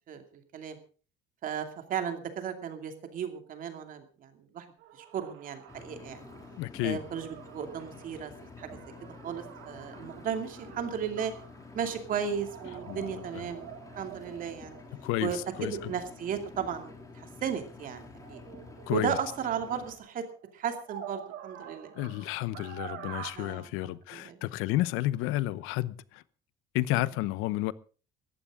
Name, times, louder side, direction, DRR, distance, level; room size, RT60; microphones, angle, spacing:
voice 1, 0.1-0.8 1.4-4.7 4.9-6.2 6.8-8.8 9.2-11.3 11.7-14.8 15.2-18.4 18.9-20.2 20.5-21.9 23.3-24.4 26.9-27.1, right 7 dB, 40° right, 2.6 m, -35 dB
sound 1, 4.8-17.5 18.0-23.3, right 10 dB, 65° right, 3.7 m, -48 dB
Engine, 5.7-20.0, left 4 dB, 15° left, 2.7 m, -49 dB
voice 2, 6.6-7.0 12.9-13.4 15.0-15.9 18.9-19.1 22.0-26.2 26.7-27.7, left 16 dB, 90° left, 0.9 m, -31 dB
19.0 x 14.5 x 3.7 m
cardioid pair, 175°, 21 cm